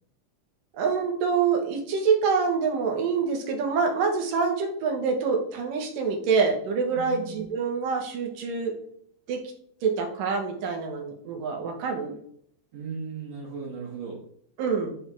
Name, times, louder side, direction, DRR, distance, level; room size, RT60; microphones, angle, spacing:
voice 1, 0.7-8.7 9.3-9.4 9.8-12.2 14.6-14.9, right 5 dB, 80° right, 3 dB, 2.9 m, -26 dB
voice 2, 6.9-7.5 12.7-14.2, right 5 dB, 60° right, -3 dB, 2.1 m, -37 dB
9.5 x 4.3 x 3.5 m, 0.64 s
omnidirectional pair, 3.9 m